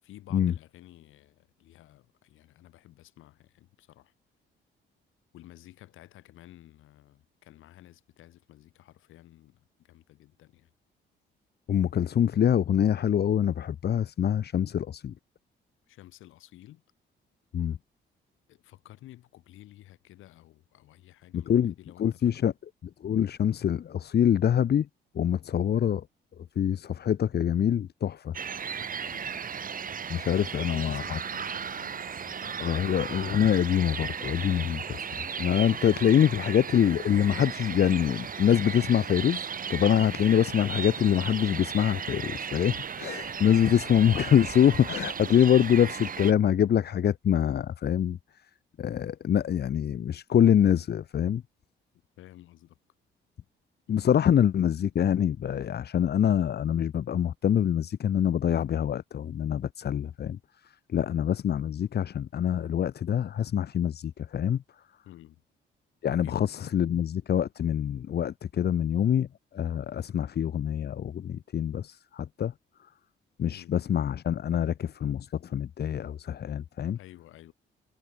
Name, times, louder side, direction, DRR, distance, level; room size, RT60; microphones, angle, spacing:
voice 1, 0.0-4.1 5.3-10.7 15.9-16.8 18.5-22.5 29.0-29.4 30.4-32.6 43.4-43.8 52.2-52.8 65.0-65.4 66.2-66.5 73.5-73.8 76.9-77.5, left 15 dB, 85° left, 6.8 m, -52 dB
voice 2, 11.7-15.1 17.5-17.8 21.3-21.7 22.0-22.5 23.0-24.9 25.1-26.0 26.5-28.3 30.1-31.2 32.6-35.1 35.4-48.2 48.8-51.4 53.9-60.4 60.9-64.6 66.0-69.3 69.5-72.5 73.4-77.0, left 9 dB, 55° left, 1.4 m, -25 dB
sound 1, 28.3-46.3, right 7 dB, 45° right, 2.3 m, -36 dB
cardioid pair, 90°, 20 cm